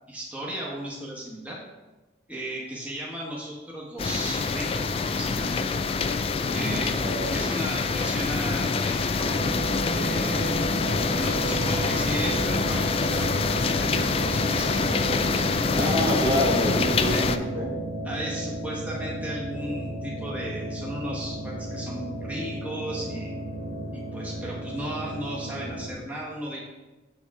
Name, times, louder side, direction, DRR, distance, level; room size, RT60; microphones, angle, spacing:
voice 1, 0.1-1.6 2.3-5.6 6.5-7.0 7.3-9.4 9.9-10.7 11.1-16.0 17.1-17.3 18.0-23.4 23.9-26.6, right 1 dB, 10° right, -5 dB, 1.2 m, -35 dB
sound 1, 4.0-17.4, left 4 dB, 30° left, 0.3 m, -26 dB
voice 2, 6.5-7.5 15.8-17.7, equal, 30° right, -3 dB, 1.3 m, -27 dB
sound 2, 9.2-25.9, right 2 dB, 50° right, 1.7 m, -34 dB
7.0 x 6.9 x 3.6 m, 1.2 s
head